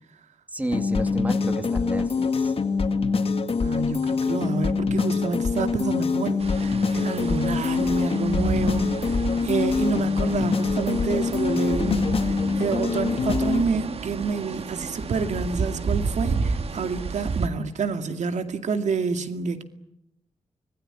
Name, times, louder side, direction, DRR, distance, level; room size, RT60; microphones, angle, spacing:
voice 1, 0.5-2.5, right 1 dB, 15° right, 2.3 m, -31 dB
sound 1, 0.7-13.6, left 4 dB, 50° left, 2.0 m, -24 dB
voice 2, 3.6-9.2 9.4-19.6, right 5 dB, 80° right, 2.3 m, -28 dB
sound 2, 6.4-17.5, right 4 dB, 55° right, 1.7 m, -31 dB
25.5 x 21.0 x 9.9 m
wide cardioid pair, 115°, 12 cm